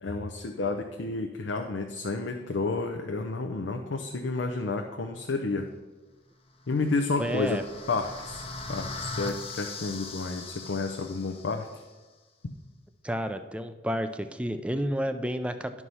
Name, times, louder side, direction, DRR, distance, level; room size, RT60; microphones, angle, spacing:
voice 1, 0.0-5.7 6.7-7.6 7.9-8.4 8.7-11.7, left 3 dB, 75° left, 5 dB, 0.6 m, -30 dB
sound 1, 6.7-11.8, left 3 dB, 30° left, 0.7 m, -40 dB
voice 2, 7.2-7.6 13.0-15.8, equal, 5° right, 9 dB, 0.4 m, -30 dB
11.5 x 4.7 x 5.5 m, 1.2 s
head